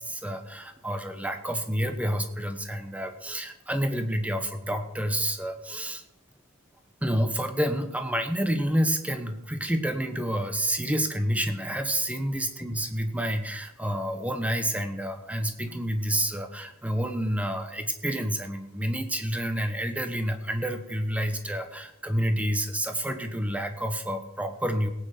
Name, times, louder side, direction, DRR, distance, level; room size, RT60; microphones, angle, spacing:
voice 1, 0.0-6.0 7.0-24.9, equal, 5° right, 7 dB, 1.1 m, -29 dB
17.5 x 9.2 x 5.1 m, 0.90 s
head